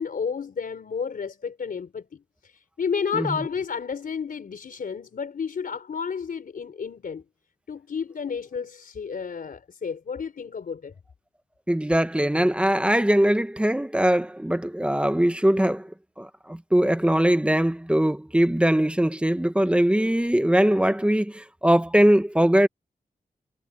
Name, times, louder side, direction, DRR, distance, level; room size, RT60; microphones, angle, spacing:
voice 1, 0.0-7.2 7.7-10.9, left 6 dB, 75° left, 4.0 m, -31 dB
voice 2, 11.7-15.9 16.2-22.7, right 1 dB, 5° right, 1.1 m, -21 dB
wide cardioid pair, 140°, 15 cm